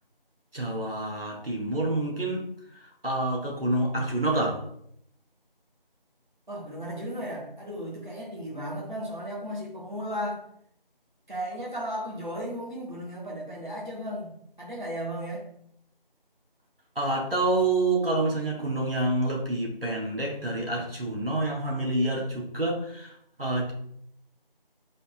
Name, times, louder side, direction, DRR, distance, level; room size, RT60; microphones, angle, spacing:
voice 1, 0.5-2.4 2.7-4.6 16.9-23.1 23.4-23.7, right 2 dB, 75° right, -1 dB, 1.5 m, -27 dB
voice 2, 6.5-10.4 11.3-15.5, equal, 55° right, -4 dB, 1.3 m, -35 dB
5.3 x 4.1 x 2.2 m, 0.70 s
figure-of-eight pair, 175°, 29 cm